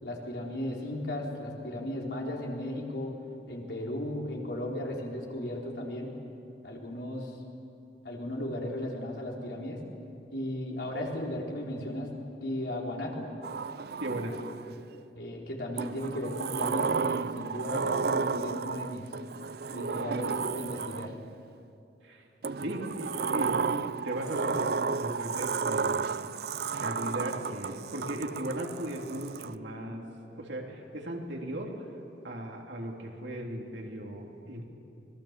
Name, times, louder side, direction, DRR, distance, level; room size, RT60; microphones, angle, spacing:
voice 1, 0.0-3.1 3.5-6.1 6.6-7.4 8.0-9.8 10.3-12.1 12.4-13.3 15.1-19.0 19.7-21.1, left 1 dB, 70° left, -2 dB, 4.1 m, -35 dB
Sliding door, 13.4-14.8 15.8-21.3 22.4-29.5, right 5 dB, 60° right, 0.4 m, -32 dB
voice 2, 14.0-14.3 22.0-22.3 22.6-26.1 26.8-30.0 30.4-31.7 32.2-34.7, right 1 dB, 80° right, 0 dB, 3.1 m, -37 dB
25.5 x 20.0 x 7.4 m, 2.7 s
head